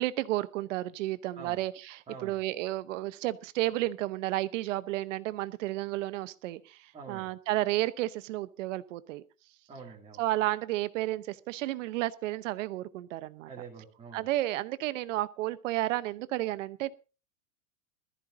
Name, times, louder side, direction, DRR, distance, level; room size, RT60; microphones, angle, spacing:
voice 1, 0.0-6.8 7.1-9.2 10.2-13.5 14.1-16.9, right 16 dB, 55° right, 16 dB, 0.9 m, -32 dB
voice 2, 2.1-2.4 6.9-7.3 9.7-10.2 13.5-14.3, right 5 dB, 15° right, -3 dB, 2.5 m, -46 dB
20.5 x 14.0 x 2.6 m, 0.32 s
supercardioid pair, 145°, 44 cm